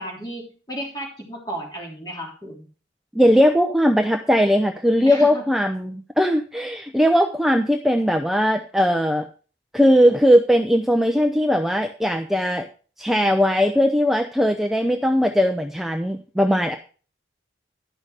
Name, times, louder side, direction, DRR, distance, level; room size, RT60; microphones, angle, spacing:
voice 1, 0.0-2.6 5.0-5.4, equal, 20° left, -1 dB, 3.4 m, -33 dB
voice 2, 3.1-9.3 9.7-12.7 13.0-16.8, equal, ahead, 4 dB, 0.6 m, -19 dB
11.0 x 6.3 x 4.9 m, 0.37 s
head